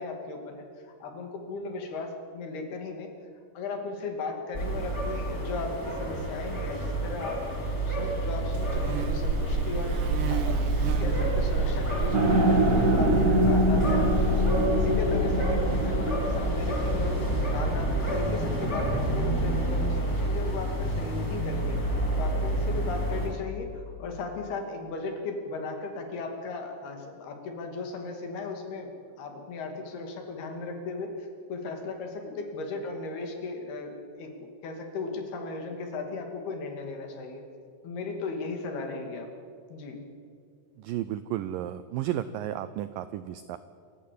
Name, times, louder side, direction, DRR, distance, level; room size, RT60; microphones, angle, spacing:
voice 1, 0.0-3.1 3.5-10.7 11.0-21.8 22.2-28.9 29.2-37.4 37.8-39.3 39.7-40.0, left 3 dB, 70° left, 4 dB, 4.5 m, -36 dB
sound 1, 4.5-23.3, equal, 15° left, 5.8 m, -28 dB
Buzz, 8.5-14.7, right 8 dB, 70° right, 2.3 m, -32 dB
sound 2, 12.1-18.3, right 1 dB, 40° right, 1.2 m, -26 dB
voice 2, 40.8-43.6, right 12 dB, 85° right, 14 dB, 1.9 m, -33 dB
27.0 x 14.5 x 8.6 m, 2.3 s
omnidirectional pair, 4.7 m